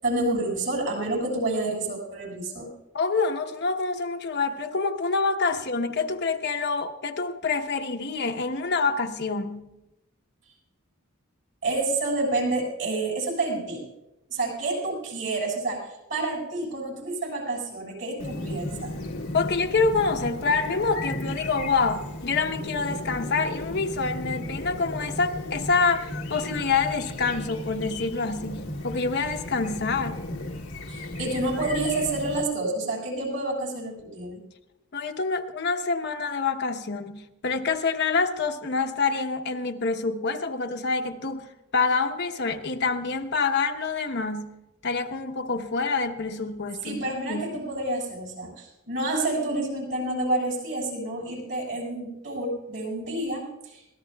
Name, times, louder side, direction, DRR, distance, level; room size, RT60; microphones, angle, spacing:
voice 1, 0.0-2.7 11.6-13.8 14.3-19.0 30.9-34.4 46.8-53.8, right 2 dB, 60° right, 7.1 m, -29 dB
voice 2, 2.9-9.7 19.3-30.2 34.9-44.5 44.8-47.6, left 4 dB, 55° left, 0.9 m, -27 dB
Chirp tweet, 18.2-32.4, left 1 dB, 90° left, 1.5 m, -35 dB
24.5 x 17.5 x 2.3 m
head